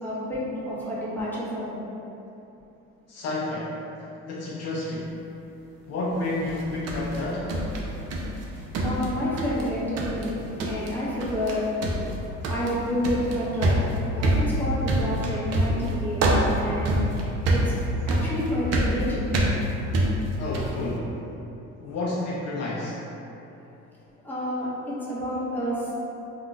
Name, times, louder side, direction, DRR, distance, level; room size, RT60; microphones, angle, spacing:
voice 1, 0.0-1.8 8.8-11.7 12.5-13.9 14.1-16.3 16.6-17.0 17.5-17.6 18.1-19.4 24.2-25.9, equal, 5° left, -9 dB, 0.8 m, -29 dB
voice 2, 3.1-3.7 4.2-5.1 5.9-7.5 20.4-21.2 21.8-23.0, left 2 dB, 50° left, -5 dB, 0.5 m, -30 dB
sound 1, 6.5-8.4 8.7-9.7 10.0-10.3 10.6-10.9 11.2-11.5 11.8-20.8, right 1 dB, 50° right, 0.5 m, -25 dB
2.4 x 2.2 x 3.7 m, 2.9 s
cardioid pair, 105°, 32 cm